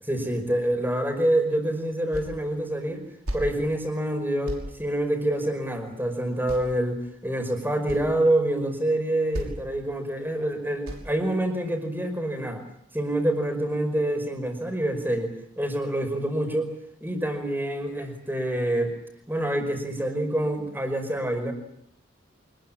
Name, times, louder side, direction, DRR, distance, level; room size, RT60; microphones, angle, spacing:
voice 1, 0.1-3.0 3.3-12.6 12.9-16.7 17.0-19.0 19.3-21.5, right 1 dB, 10° right, 6 dB, 5.2 m, -26 dB
sound 1, 2.1-2.4 2.7-3.5 3.9-4.1 4.4-4.7 5.9-6.0 6.5-6.9 7.4-7.5 7.7-8.1 8.8-9.0 9.3-9.7 10.1-10.3 10.9-11.2, equal, 85° right, 6.0 m, -34 dB
26.5 x 21.0 x 8.9 m, 0.68 s
head